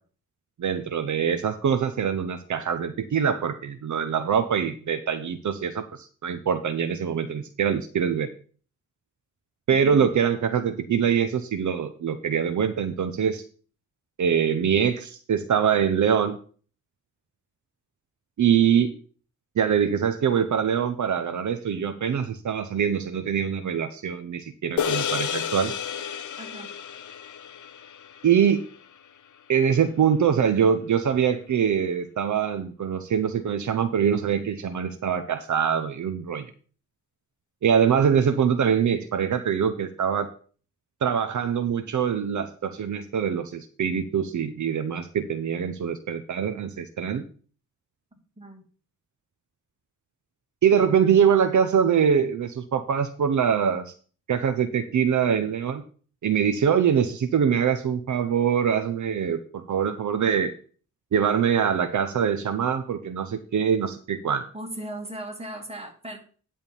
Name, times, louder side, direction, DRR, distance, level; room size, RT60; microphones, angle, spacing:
voice 1, 0.6-8.3 9.7-13.4 14.2-16.4 18.4-18.9 19.6-25.7 28.2-28.6 29.5-36.4 37.6-40.3 41.0-47.2 50.6-53.9 54.3-55.8 56.2-60.5 61.1-64.4, right 7 dB, 65° right, 9 dB, 0.7 m, -23 dB
sound 1, 24.8-29.4, left 8 dB, 70° left, 0.7 m, -31 dB
voice 2, 26.4-26.7 48.4-48.6 64.5-66.2, right 1 dB, 20° right, 2 dB, 2.1 m, -38 dB
10.5 x 3.6 x 7.0 m, 0.42 s
wide cardioid pair, 90°, 31 cm